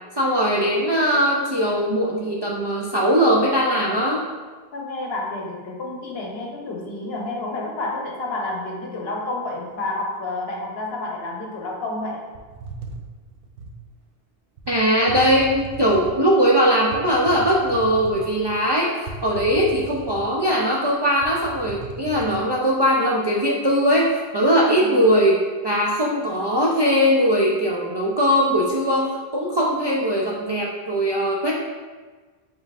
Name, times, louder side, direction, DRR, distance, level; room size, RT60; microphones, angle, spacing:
voice 1, 0.2-4.2 14.7-31.5, equal, 45° right, -4 dB, 0.3 m, -20 dB
voice 2, 4.7-12.3 24.7-25.0, left 2 dB, 75° left, -1 dB, 1.0 m, -30 dB
sound 1, 12.3-13.8 14.6-14.7 15.1-16.2 16.9-18.6 19.1-20.5 20.8-20.9 21.2-22.4, right 4 dB, 65° right, 0.8 m, -37 dB
5.1 x 3.8 x 2.4 m, 1.4 s
omnidirectional pair, 1.0 m